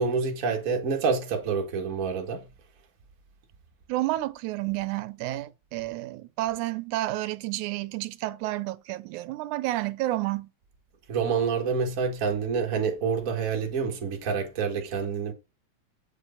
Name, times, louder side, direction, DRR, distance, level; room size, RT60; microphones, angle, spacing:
voice 1, 0.0-2.4 11.1-15.3, right 5 dB, 40° right, 1.4 m, -27 dB
voice 2, 3.9-10.5, right 17 dB, 85° right, 2.1 m, -30 dB
8.7 x 4.8 x 5.7 m
omnidirectional pair, 3.4 m